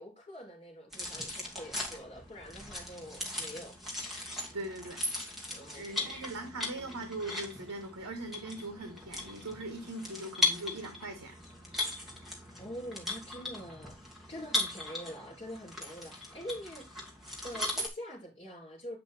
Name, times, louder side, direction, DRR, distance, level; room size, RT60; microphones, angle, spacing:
voice 1, 0.0-3.8 5.5-6.1 12.6-17.1 17.4-19.0, equal, 25° left, 3.9 m, -45 dB
sound 1, 0.9-17.9, left 2 dB, ahead, 2.0 m, -38 dB
voice 2, 4.5-5.0 5.7-11.4, right 2 dB, 80° right, 1.6 m, -40 dB
8.5 x 5.3 x 4.2 m
head